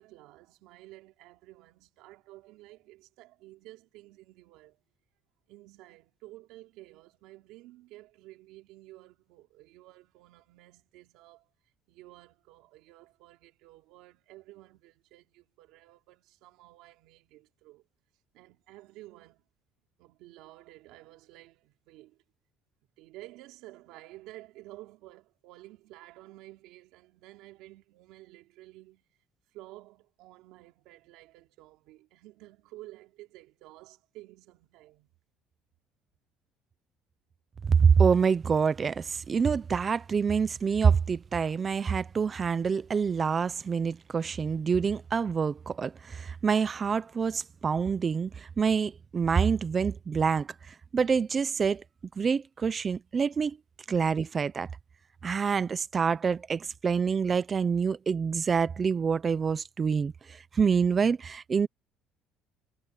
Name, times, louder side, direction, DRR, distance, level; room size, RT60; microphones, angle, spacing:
voice 1, 0.0-4.8 5.5-11.5 11.9-17.9 18.3-19.4 20.0-22.2 23.0-29.2 29.5-35.1, right 17 dB, 75° right, 4.0 m, -52 dB
voice 2, 37.6-51.8 52.2-53.6 53.9-54.7 55.2-61.7, right 6 dB, 20° right, 0.4 m, -26 dB
cardioid pair, 170°, 0 cm